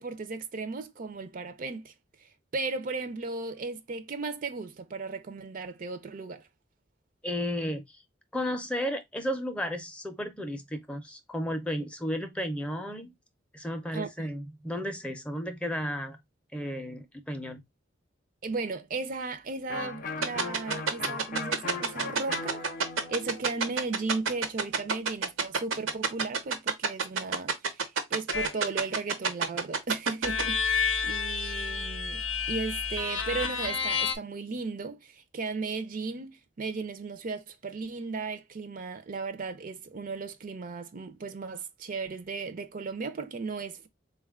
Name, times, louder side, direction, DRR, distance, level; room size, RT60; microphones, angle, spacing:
voice 1, 0.0-1.9 2.2-6.5 13.9-14.3 18.4-22.6 23.1-43.9, right 4 dB, 45° right, 0.4 m, -36 dB
voice 2, 7.2-8.0 8.3-13.1 13.5-16.2 16.5-17.6, equal, 5° left, 0.5 m, -33 dB
Electric guitar, 19.7-25.3, left 3 dB, 45° left, 0.6 m, -39 dB
sound 1, 20.2-30.4, right 5 dB, 90° right, 0.8 m, -26 dB
sound 2, 28.3-28.6 30.2-34.2, left 5 dB, 90° left, 0.6 m, -30 dB
3.8 x 2.3 x 3.5 m
head